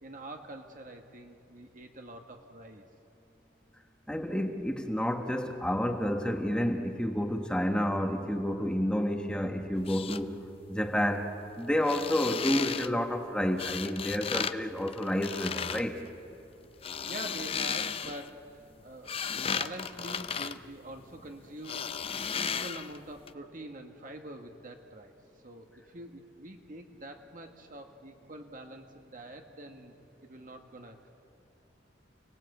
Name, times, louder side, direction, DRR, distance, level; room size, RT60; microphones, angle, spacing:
voice 1, 0.0-2.8 17.0-25.1 25.4-30.0 30.2-31.1, right 1 dB, 45° right, 3 dB, 1.5 m, -45 dB
voice 2, 4.1-10.4 10.7-11.3 11.6-16.0, equal, 5° left, 4 dB, 1.4 m, -30 dB
sound 1, 9.7-10.2 11.7-12.9 13.6-14.5 14.8-15.8 16.6-18.3 18.8-21.3 21.6-23.0 23.3-23.4, left 6 dB, 30° left, 0.6 m, -35 dB
29.5 x 19.0 x 8.2 m, 2.7 s
head